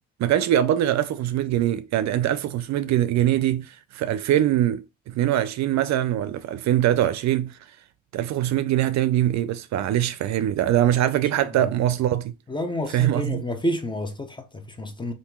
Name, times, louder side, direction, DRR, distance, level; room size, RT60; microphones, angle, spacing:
voice 1, 0.2-7.6 8.1-12.3 12.9-13.4, right 12 dB, 65° right, 0.4 m, -23 dB
voice 2, 12.5-15.1, left 1 dB, 15° left, 0.6 m, -29 dB
2.9 x 2.6 x 3.4 m
cardioid pair, 90°, 30 cm